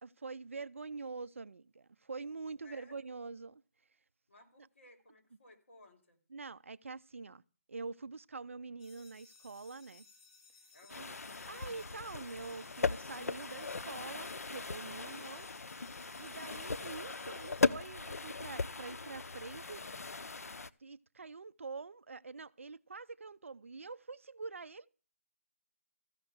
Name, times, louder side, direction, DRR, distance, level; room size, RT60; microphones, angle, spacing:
voice 1, 0.0-3.6 6.3-7.4 7.7-10.0 10.9-11.2 11.5-15.5 16.2-19.8 20.8-24.9, right 4 dB, 60° right, 0.5 m, -45 dB
voice 2, 2.6-3.0 4.3-6.2 10.7-11.3, left 2 dB, 50° left, 3.6 m, -60 dB
sound 1, 8.8-17.7, left 4 dB, 20° left, 2.1 m, -61 dB
sound 2, 10.9-20.7, left 4 dB, 80° left, 0.7 m, -38 dB
14.5 x 5.9 x 7.9 m
hypercardioid pair, 175°, 8 cm